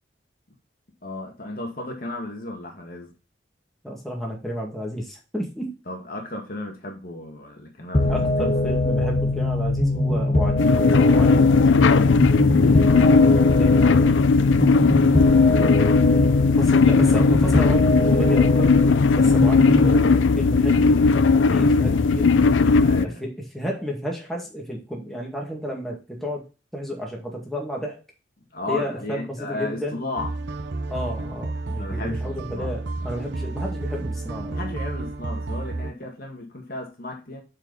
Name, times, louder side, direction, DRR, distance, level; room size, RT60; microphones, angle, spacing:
voice 1, 1.0-3.1 5.9-8.5 14.5-15.0 21.3-21.6 22.8-23.2 28.5-30.3 31.8-32.7 34.5-37.4, left 2 dB, 50° left, 2.1 m, -34 dB
voice 2, 3.8-5.7 8.1-10.7 11.1-13.1 13.6-14.2 16.2-16.3 16.6-18.7 19.1-20.8 21.5-22.3 23.0-26.5 26.7-28.0 28.7-30.0 30.9-34.6, equal, ahead, 2.0 m, -32 dB
sound 1, 7.9-19.9, left 2 dB, 35° left, 0.8 m, -22 dB
sound 2, 10.6-23.1, left 4 dB, 90° left, 0.5 m, -17 dB
sound 3, 30.2-35.9, right 2 dB, 70° right, 0.7 m, -31 dB
8.8 x 4.6 x 4.1 m
head